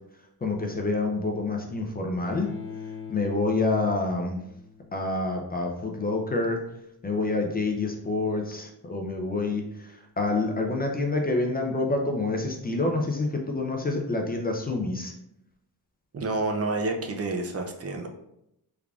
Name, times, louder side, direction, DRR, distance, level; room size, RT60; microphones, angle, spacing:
voice 1, 0.4-2.5 3.1-4.4 4.9-6.6 7.0-15.1, left 3 dB, 25° left, 2 dB, 0.4 m, -27 dB
Bowed string instrument, 2.2-5.3, left 6 dB, 55° left, 1.1 m, -42 dB
voice 2, 16.1-18.1, right 3 dB, 40° right, 3 dB, 0.4 m, -29 dB
3.6 x 3.4 x 2.3 m, 0.81 s
wide cardioid pair, 130°, 40 cm